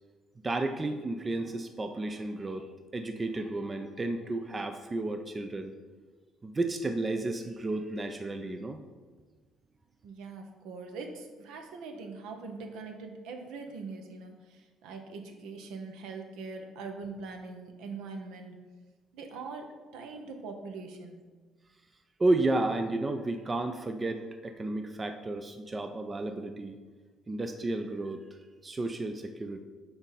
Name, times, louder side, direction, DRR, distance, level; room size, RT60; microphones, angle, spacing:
voice 1, 0.4-5.7 6.4-8.8 22.2-26.8 27.3-28.3 28.6-29.6, right 2 dB, 30° right, 7 dB, 0.4 m, -32 dB
voice 2, 10.0-18.6 19.1-21.2, right 4 dB, 65° right, 4 dB, 0.6 m, -42 dB
5.8 x 4.0 x 4.1 m, 1.4 s
hypercardioid pair, 50°, 0 cm